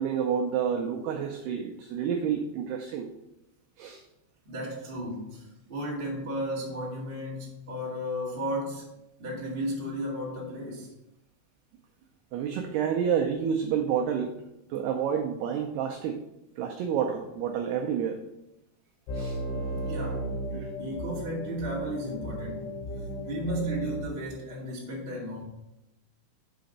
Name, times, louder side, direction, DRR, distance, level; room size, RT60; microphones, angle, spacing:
voice 1, 0.0-3.1 3.8-4.0 12.3-14.3 14.7-16.2 16.6-18.2 19.1-19.4 20.5-20.7, right 7 dB, 90° right, 3 dB, 2.3 m, -29 dB
voice 2, 4.4-10.9 19.8-20.3 20.8-25.4, equal, 65° right, -5 dB, 0.5 m, -34 dB
sound 1, 19.1-24.1, equal, 80° left, 4.1 m, -35 dB
6.7 x 5.1 x 5.3 m, 0.88 s
omnidirectional pair, 5.4 m